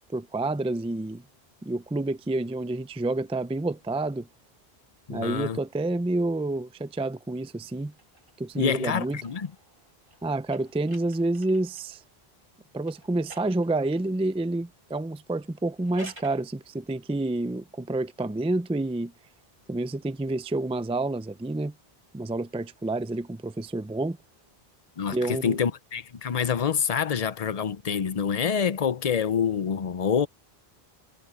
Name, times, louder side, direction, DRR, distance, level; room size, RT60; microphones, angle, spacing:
voice 1, 0.1-1.2 1.6-4.3 5.1-7.9 8.4-9.2 10.2-12.0 12.7-19.1 19.7-21.7 22.1-24.2 25.1-25.6, right 2 dB, 10° right, 0.4 m, -29 dB
voice 2, 5.1-5.6 8.6-9.5 25.0-30.3, left 7 dB, 45° left, 0.7 m, -26 dB
sound 1, 7.9-12.0 12.8-14.2 15.6-16.5, right 1 dB, 55° right, 5.7 m, -50 dB
omnidirectional pair, 1.1 m